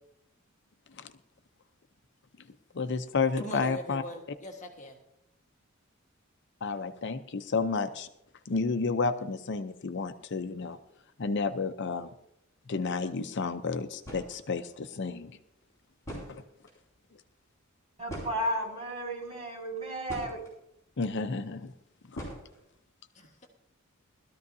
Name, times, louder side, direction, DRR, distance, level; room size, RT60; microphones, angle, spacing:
voice 1, 2.7-4.0 6.6-8.1 8.5-10.8 11.2-12.1 12.7-15.4 16.3-16.4 21.0-21.7 22.1-22.2, left 4 dB, 60° left, 9 dB, 0.6 m, -31 dB
voice 2, 3.4-5.0 23.1-23.5, equal, 35° left, 1 dB, 1.4 m, -41 dB
sound 1, 14.0-14.4 15.6-15.7 16.0-16.8 18.1-18.9 19.6-20.5 22.1-22.8, equal, 15° left, 6.5 m, -42 dB
voice 3, 18.0-20.5, equal, 30° right, -3 dB, 6.0 m, -33 dB
20.0 x 13.5 x 2.7 m, 0.79 s
head